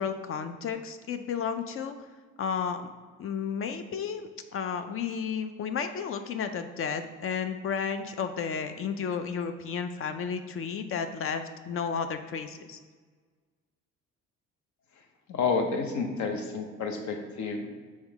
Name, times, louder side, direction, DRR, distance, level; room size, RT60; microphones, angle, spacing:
voice 1, 0.0-2.0 2.4-2.8 3.2-12.8, left 6 dB, 50° left, 9 dB, 0.4 m, -32 dB
voice 2, 15.3-17.7, left 4 dB, 70° left, 4 dB, 0.8 m, -30 dB
3.5 x 3.1 x 4.6 m, 1.5 s
cardioid pair, 90°, 30 cm